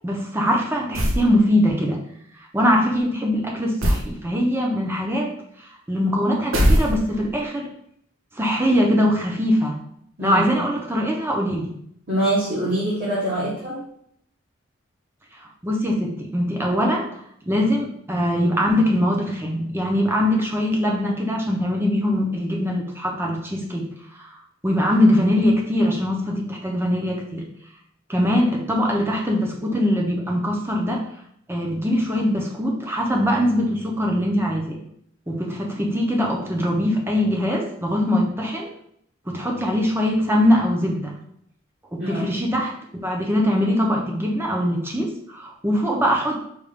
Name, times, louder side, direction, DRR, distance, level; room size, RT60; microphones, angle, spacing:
voice 1, 0.0-2.0 2.5-5.3 5.9-7.7 8.4-9.8 10.2-11.7 15.6-17.1 17.5-23.9 24.2-24.3 24.6-27.5 28.1-31.0 31.5-34.8 35.3-38.7 39.3-41.1 41.9-42.7 43.0-46.4, equal, 10° right, 0 dB, 0.7 m, -22 dB
sound 1, 0.9-1.3 3.8-4.1 6.5-7.3, equal, 75° right, 0.7 m, -19 dB
voice 2, 12.1-13.8 42.0-42.3, right 1 dB, 50° right, -9 dB, 1.3 m, -24 dB
5.1 x 2.5 x 3.5 m, 0.68 s
head